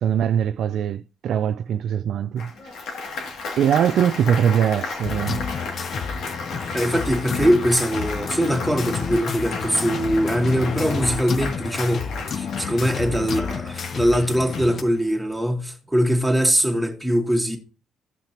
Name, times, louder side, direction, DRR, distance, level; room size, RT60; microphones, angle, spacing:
voice 1, 0.0-2.8 3.6-5.5, right 9 dB, 70° right, 0.4 m, -22 dB
Applause, 2.4-15.1, left 3 dB, 80° left, 2.5 m, -34 dB
sound 1, 5.0-14.8, left 6 dB, 50° left, 0.8 m, -30 dB
voice 2, 6.7-17.6, equal, 5° right, 2.2 m, -22 dB
16.0 x 5.8 x 2.9 m
cardioid pair, 90°, 0 cm